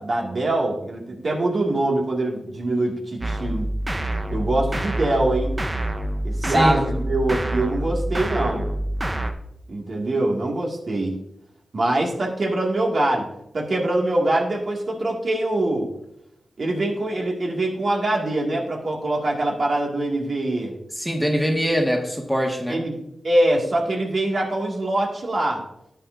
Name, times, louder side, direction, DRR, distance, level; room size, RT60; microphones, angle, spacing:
voice 1, 0.0-3.7 4.3-5.6 6.2-8.7 9.7-11.2 11.7-13.3 13.5-15.9 16.6-20.7 22.7-25.6, right 1 dB, 60° right, -1 dB, 2.1 m, -23 dB
sound 1, 3.2-9.3, right 1 dB, 25° right, 0.8 m, -26 dB
voice 2, 6.4-6.8 21.0-22.8, equal, ahead, 1 dB, 1.6 m, -23 dB
11.0 x 8.7 x 2.6 m, 0.80 s
cardioid pair, 75°, 0 cm